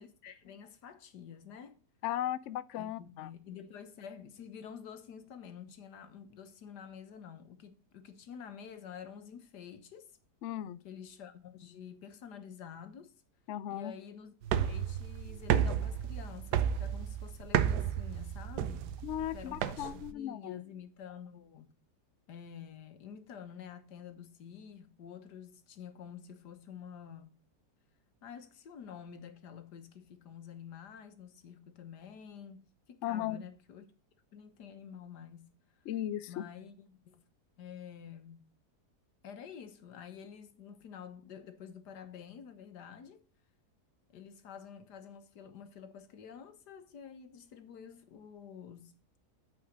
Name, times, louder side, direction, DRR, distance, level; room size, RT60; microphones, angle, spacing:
voice 1, 0.0-1.8 2.7-10.1 10.8-13.1 13.7-14.4 14.6-19.0 19.2-21.7 22.3-27.4 28.2-32.6 32.9-33.9 34.3-35.5 36.3-37.2 37.6-38.4 39.2-43.2 44.1-48.9, left 7 dB, 85° left, 1.7 m, -49 dB
voice 2, 2.0-3.3 10.4-10.8 13.5-13.9 19.0-20.6 33.0-33.4 35.9-36.4, left 12 dB, 70° left, 0.7 m, -36 dB
sound 1, 14.4-20.1, right 9 dB, 80° right, 1.3 m, -32 dB
8.8 x 4.9 x 6.3 m
omnidirectional pair, 1.7 m